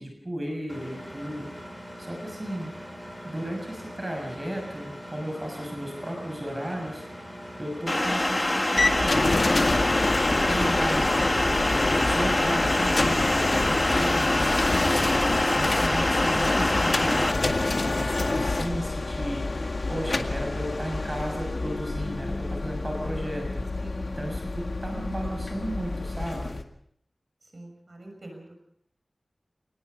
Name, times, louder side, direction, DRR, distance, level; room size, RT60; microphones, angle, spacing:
voice 1, 0.0-1.5 2.0-2.7 3.2-7.3 7.6-9.9 10.3-14.4 14.8-23.8 24.2-26.5, equal, 25° right, 1 dB, 6.7 m, -34 dB
Engine, 0.7-12.4, equal, ahead, 5.9 m, -42 dB
sound 1, 7.9-17.3, left 1 dB, 25° left, 1.6 m, -25 dB
sound 2, 8.8-26.6, left 2 dB, 65° left, 1.9 m, -27 dB
voice 2, 27.4-28.5, right 1 dB, 55° right, 2 dB, 6.0 m, -46 dB
27.5 x 19.5 x 5.3 m, 0.71 s
wide cardioid pair, 55°, 0 cm